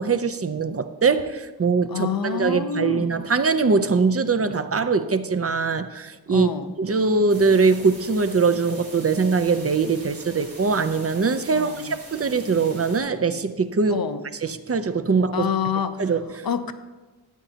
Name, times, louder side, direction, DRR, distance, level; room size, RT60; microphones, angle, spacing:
voice 1, 0.0-6.5 6.8-14.0 14.4-15.5 16.0-16.5, right 4 dB, 35° right, 0.6 m, -22 dB
voice 2, 1.9-3.2 6.3-6.7 11.5-12.0 13.9-14.2 15.3-16.0 16.4-16.7, left 7 dB, 60° left, 0.7 m, -27 dB
sound 1, 7.3-13.0, right 2 dB, 75° right, 2.6 m, -43 dB
13.0 x 8.9 x 2.8 m
wide cardioid pair, 70°, 40 cm